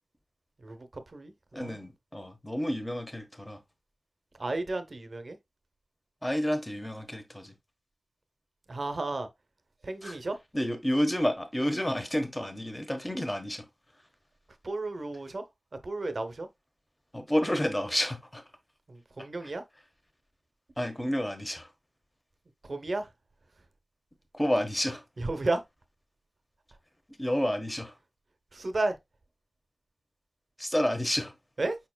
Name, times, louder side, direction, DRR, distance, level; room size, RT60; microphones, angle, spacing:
voice 1, 0.6-1.3 1.6-1.8 4.4-5.4 8.7-9.3 9.8-10.4 14.6-15.4 15.8-16.5 18.9-19.6 22.6-23.1 25.2-25.6 28.5-29.0 31.6-31.8, right 2 dB, 60° right, 0.8 m, -32 dB
voice 2, 1.5-3.6 6.2-7.5 10.0-10.2 10.5-13.6 17.1-18.4 19.4-19.5 20.8-21.7 24.3-25.0 27.2-27.9 30.6-31.3, equal, 15° left, 1.1 m, -30 dB
5.2 x 4.4 x 2.2 m
wide cardioid pair, 55°, 0 cm